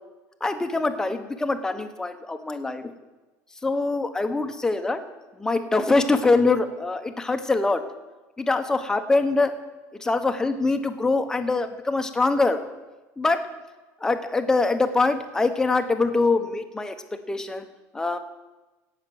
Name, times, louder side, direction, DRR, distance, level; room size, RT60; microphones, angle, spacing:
voice 1, 0.4-2.9 3.6-5.0 5.4-7.8 8.4-9.5 10.0-12.6 13.2-13.5 14.0-17.0 17.3-17.6 17.9-18.2, left 3 dB, 10° left, 7 dB, 0.9 m, -23 dB
17.0 x 5.9 x 7.7 m, 1.1 s
cardioid pair, 160°, 7 cm